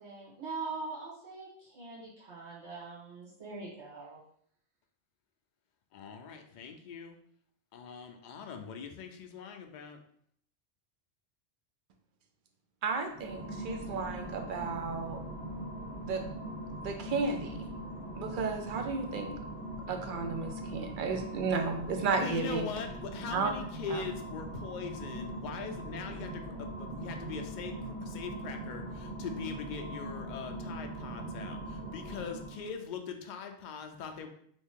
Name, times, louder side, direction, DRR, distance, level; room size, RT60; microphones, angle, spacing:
voice 1, 0.0-4.2, right 4 dB, 80° right, -7 dB, 1.6 m, -42 dB
voice 2, 5.9-7.2 7.7-10.0 22.1-34.3, left 6 dB, 55° left, 5 dB, 0.5 m, -41 dB
voice 3, 12.8-15.2 16.0-16.2 16.8-17.7 18.2-19.4 19.9-22.7 23.3-23.5 23.9-24.0, right 4 dB, 60° right, 5 dB, 0.6 m, -33 dB
sound 1, 13.0-32.8, right 1 dB, 20° right, 0.9 m, -41 dB
3.0 x 2.6 x 3.6 m, 0.64 s
omnidirectional pair, 1.2 m